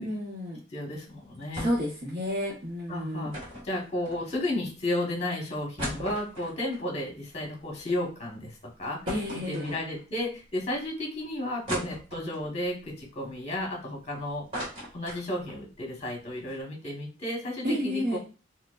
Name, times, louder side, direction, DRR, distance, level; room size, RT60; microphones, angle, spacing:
voice 1, 0.0-0.6 1.6-3.3 9.1-9.7 17.6-18.2, equal, 55° right, -6 dB, 0.9 m, -30 dB
voice 2, 0.7-1.7 2.9-9.0 9.5-14.5 14.9-18.2, left 1 dB, 35° left, 0 dB, 1.1 m, -33 dB
sound 1, 1.6-2.0 2.3-2.4 3.3-4.6 5.1-5.2 5.5-8.0 8.4-8.5 9.1-10.2 10.7-10.8 11.7-12.5 13.1-14.0 14.3-15.6 16.0-16.1 16.3-16.6, equal, 30° right, 1.3 m, -38 dB
4.3 x 2.1 x 2.4 m, 0.34 s
head